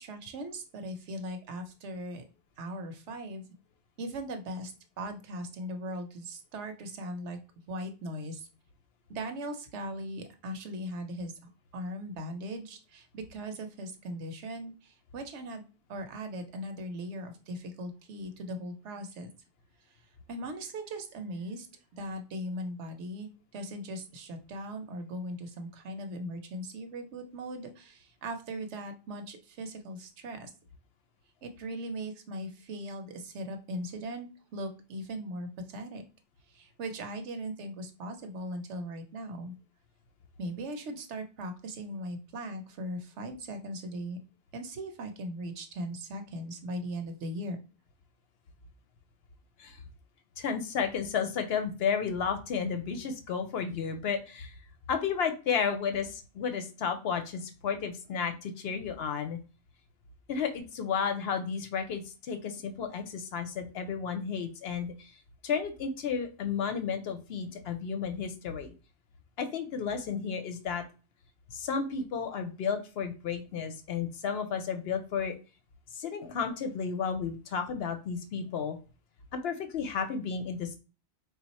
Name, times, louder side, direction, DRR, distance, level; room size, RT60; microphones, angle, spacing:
voice 1, 0.0-2.2 2.6-3.4 4.0-7.4 7.7-8.5 9.1-11.3 11.7-15.6 15.9-19.3 20.3-21.7 21.9-30.5 31.4-36.0 36.5-39.5 40.4-44.2 44.5-47.6, right 1 dB, 80° right, 6 dB, 1.0 m, -39 dB
voice 2, 50.4-54.5 54.9-59.4 60.3-65.1 65.4-68.7 69.4-70.8 71.5-75.3 75.9-78.8 79.3-80.8, left 6 dB, 65° left, 7 dB, 0.8 m, -32 dB
3.5 x 2.4 x 4.1 m, 0.33 s
omnidirectional pair, 1.2 m